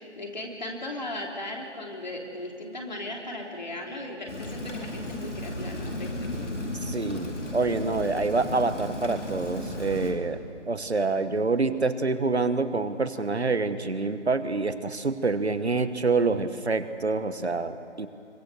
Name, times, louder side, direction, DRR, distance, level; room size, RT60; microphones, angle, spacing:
voice 1, 0.0-6.3, left 1 dB, 40° left, 0 dB, 3.2 m, -37 dB
Rain, 4.3-10.1, left 1 dB, 90° left, 4.8 m, -34 dB
voice 2, 6.8-10.4 10.7-18.1, right 3 dB, 65° right, 11 dB, 1.3 m, -27 dB
24.5 x 21.5 x 6.8 m, 2.9 s
figure-of-eight pair, 180°, 35 cm